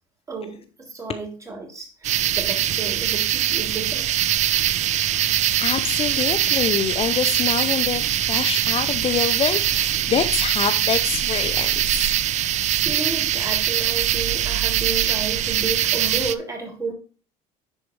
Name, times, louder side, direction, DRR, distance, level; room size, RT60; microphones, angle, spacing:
voice 1, 0.3-4.2 12.5-16.9, right 3 dB, 20° right, 0 dB, 3.3 m, -32 dB
sound 1, 2.0-16.4, right 11 dB, 45° right, 0.5 m, -22 dB
voice 2, 5.3-12.2, left 8 dB, 35° left, 10 dB, 0.6 m, -26 dB
10.5 x 4.6 x 3.2 m, 0.36 s
supercardioid pair, 95°, 17 cm